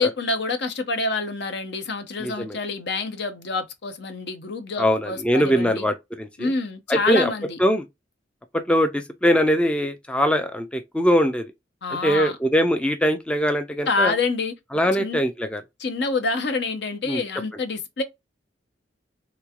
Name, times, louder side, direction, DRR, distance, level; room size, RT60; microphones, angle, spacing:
voice 1, 0.0-5.8 6.4-7.6 11.8-12.4 13.9-14.5 15.0-15.2 15.8-18.0, left 3 dB, 65° left, 0.7 m, -27 dB
voice 2, 2.2-2.6 4.8-6.5 6.9-7.3 7.6-7.8 8.7-11.5 12.0-14.1 14.7-15.6 17.1-17.2, equal, 5° left, 0.3 m, -22 dB
3.3 x 3.1 x 2.3 m
head